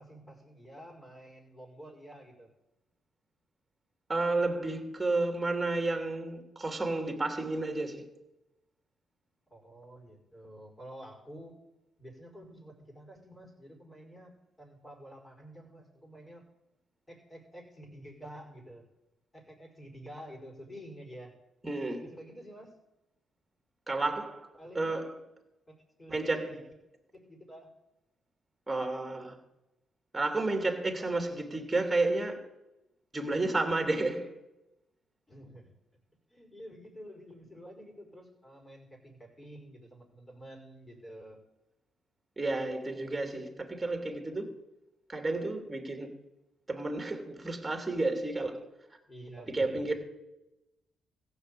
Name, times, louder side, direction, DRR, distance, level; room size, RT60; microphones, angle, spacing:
voice 1, 0.0-2.5 9.5-11.6 12.0-16.4 17.1-18.9 19.3-21.3 22.0-22.8 24.6-25.1 25.7-26.6 27.1-27.7 30.8-31.1 35.3-35.7 36.3-41.4 49.1-49.9, equal, 20° left, 5.1 m, -49 dB
voice 2, 4.1-8.1 21.6-22.0 23.9-24.5 24.7-25.2 26.1-26.5 28.7-29.4 30.1-32.5 33.1-34.3 42.4-44.5 45.1-46.1 46.7-48.6 48.9-49.0 49.5-49.9, right 2 dB, 15° right, 2.9 m, -31 dB
15.0 x 6.5 x 8.5 m
cardioid pair, 90°, 0 cm